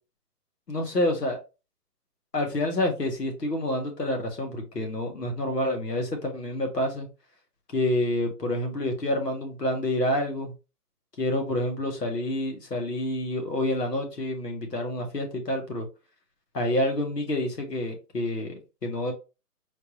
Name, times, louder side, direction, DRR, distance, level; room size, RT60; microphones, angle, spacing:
voice 1, 0.7-1.4 2.3-7.1 7.7-10.5 11.2-15.9 16.5-18.5 18.8-19.1, left 1 dB, 85° left, 3 dB, 1.9 m, -28 dB
4.3 x 3.4 x 2.7 m, 0.29 s
figure-of-eight pair, 140°, 48 cm